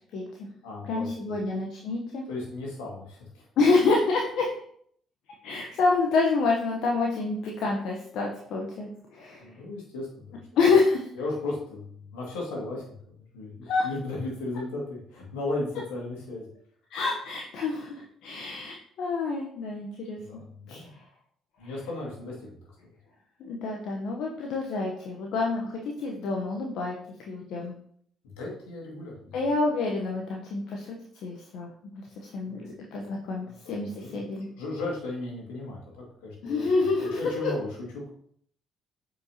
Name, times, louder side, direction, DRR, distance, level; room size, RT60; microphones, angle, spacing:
voice 1, 0.0-0.5 0.9-2.2 3.6-4.5 5.4-9.6 10.6-11.1 13.6-13.9 16.9-20.2 20.7-21.0 21.6-21.7 23.4-27.8 29.3-31.0 31.2-34.5 36.4-37.5, left 3 dB, 70° left, 0 dB, 0.9 m, -28 dB
voice 2, 0.6-1.1 2.3-3.5 9.4-10.4 11.2-16.4 20.1-20.9 21.6-22.6 22.8-22.9 28.4-29.4 32.4-33.0 33.4-37.7 37.9-38.1, left 2 dB, 85° left, -3 dB, 2.1 m, -36 dB
7.5 x 5.1 x 2.9 m, 0.64 s
hypercardioid pair, 55°, 0 cm